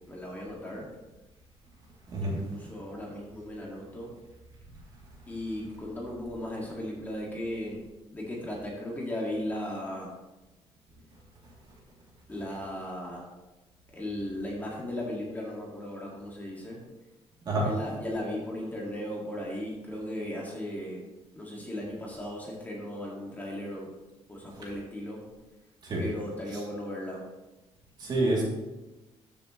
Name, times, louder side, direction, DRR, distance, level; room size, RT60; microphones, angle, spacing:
voice 1, 0.1-0.9 2.2-4.1 5.3-7.8 8.1-10.1 12.3-13.3 13.9-16.8 17.6-21.0 21.4-23.9 24.3-25.2 26.0-27.3, left 1 dB, 15° left, -3 dB, 2.0 m, -36 dB
voice 2, 2.1-2.4 17.5-17.7 25.8-26.0 28.0-28.4, right 1 dB, 40° right, -3 dB, 2.8 m, -27 dB
13.5 x 7.0 x 3.1 m, 1.0 s
cardioid pair, 160°, 11 cm